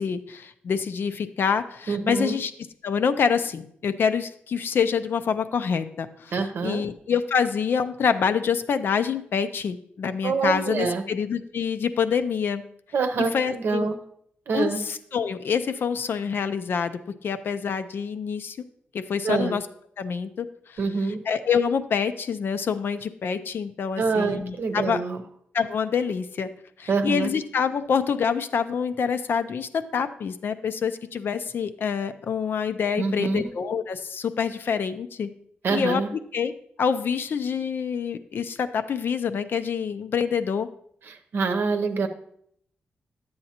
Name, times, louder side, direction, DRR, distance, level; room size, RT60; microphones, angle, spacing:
voice 1, 0.0-2.5 2.8-12.6 13.2-13.9 14.5-18.6 18.9-19.6 20.0-20.8 21.3-25.0 25.5-26.5 26.8-35.3 35.7-36.0 36.3-36.5 36.8-40.7, left 6 dB, 65° left, 10 dB, 0.5 m, -26 dB
voice 2, 1.9-2.4 6.3-6.8 10.2-11.0 12.9-14.0 14.5-14.8 19.2-19.6 20.8-21.2 24.0-25.2 26.9-27.3 33.0-33.5 35.6-36.1 41.1-42.1, right 4 dB, 65° right, 7 dB, 0.8 m, -25 dB
10.0 x 7.8 x 2.8 m, 0.67 s
wide cardioid pair, 135°, 4 cm